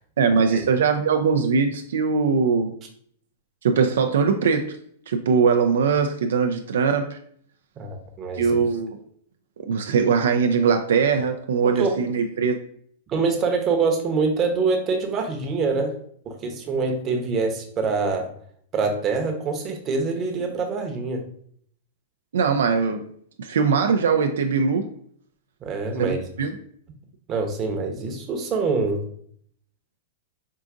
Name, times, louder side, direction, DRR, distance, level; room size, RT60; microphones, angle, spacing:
voice 1, 0.2-2.7 3.6-4.8 5.1-7.2 8.4-8.9 9.6-12.6 22.3-23.1 23.4-24.9 26.0-26.5, right 5 dB, 80° right, 6 dB, 0.3 m, -21 dB
voice 2, 7.8-8.4 11.8-11.9 13.1-15.9 16.3-18.3 18.7-21.2 25.6-26.2 27.3-29.0, right 4 dB, 30° right, 3 dB, 0.8 m, -25 dB
4.6 x 2.5 x 2.5 m, 0.62 s
hypercardioid pair, 125°, 0 cm